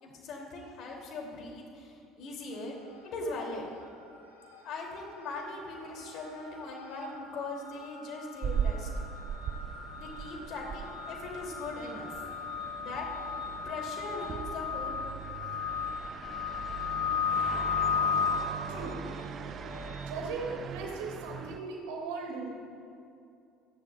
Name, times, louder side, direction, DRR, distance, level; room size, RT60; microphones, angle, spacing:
voice 1, 0.0-2.7 3.0-3.7 4.6-8.9 10.0-12.1 12.8-13.1 13.6-15.4, left 3 dB, 55° left, 0 dB, 3.3 m, -40 dB
sound 1, 2.5-3.2 3.5-20.1, left 6 dB, 80° left, 2.4 m, -36 dB
sound 2, 8.4-21.6, right 7 dB, 45° right, 0.6 m, -39 dB
voice 2, 18.7-19.0 20.1-22.5, right 4 dB, 75° right, 0 dB, 2.8 m, -38 dB
26.5 x 11.0 x 2.6 m, 2.5 s
hypercardioid pair, 65°, 0 cm